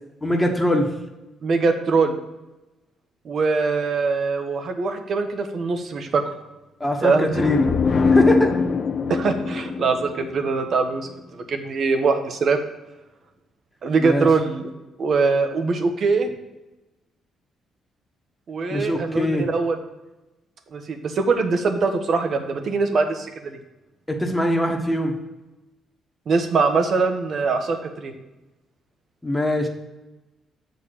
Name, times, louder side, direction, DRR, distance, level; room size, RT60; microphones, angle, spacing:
voice 1, 0.2-0.9 6.8-8.6 14.0-14.3 18.7-19.5 24.1-25.1 29.2-29.7, left 1 dB, 10° left, 3 dB, 1.1 m, -22 dB
voice 2, 1.4-2.2 3.2-6.2 7.0-7.3 9.1-12.6 13.8-14.7 15.0-16.3 18.5-19.8 20.7-23.6 26.3-28.1, right 4 dB, 55° right, 6 dB, 1.0 m, -22 dB
sound 1, 7.3-11.0, left 4 dB, 45° left, 0.5 m, -22 dB
7.0 x 4.0 x 6.6 m, 1.0 s
cardioid pair, 90°, 0 cm